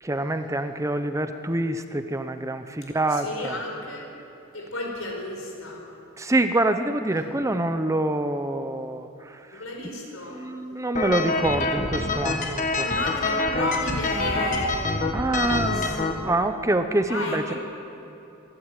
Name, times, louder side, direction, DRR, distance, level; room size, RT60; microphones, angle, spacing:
voice 1, 0.0-3.6 6.2-9.6 10.3-12.9 15.1-17.5, right 1 dB, 15° right, 9 dB, 0.7 m, -26 dB
voice 2, 3.1-4.0 4.5-5.8 7.1-7.5 9.5-10.4 12.7-16.3 17.1-17.6, left 1 dB, 75° left, 0 dB, 5.0 m, -32 dB
sound 1, 10.9-16.1, left 2 dB, 40° left, 1.7 m, -26 dB
26.0 x 12.0 x 9.1 m, 2.8 s
head